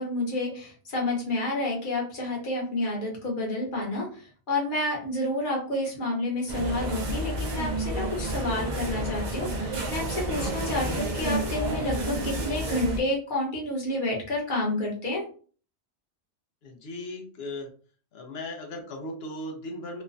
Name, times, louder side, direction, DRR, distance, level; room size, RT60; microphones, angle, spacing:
voice 1, 0.0-15.2, left 2 dB, 45° left, -2 dB, 1.1 m, -29 dB
sound 1, 6.5-13.0, right 1 dB, 45° right, 0.7 m, -30 dB
voice 2, 16.6-17.7 18.1-20.0, left 1 dB, 65° left, 3 dB, 0.9 m, -37 dB
3.1 x 2.2 x 2.5 m, 0.41 s
omnidirectional pair, 1.2 m